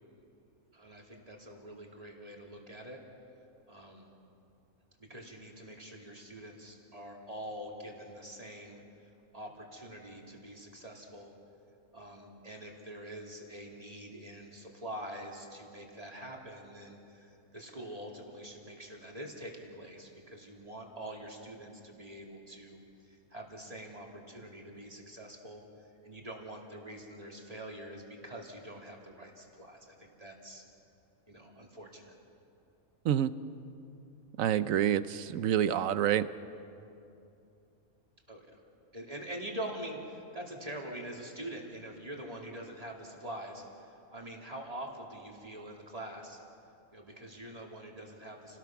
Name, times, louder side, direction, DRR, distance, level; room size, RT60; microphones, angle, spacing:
voice 1, 0.7-3.0 3.7-4.1 5.0-8.8 9.3-11.3 11.9-30.6 31.3-32.1 38.3-38.6 38.9-46.4 46.9-48.6, right 1 dB, 25° right, 0 dB, 2.7 m, -45 dB
voice 2, 34.4-36.3, right 10 dB, 70° right, 14 dB, 1.1 m, -27 dB
29.5 x 19.0 x 6.0 m, 2.7 s
omnidirectional pair, 1.5 m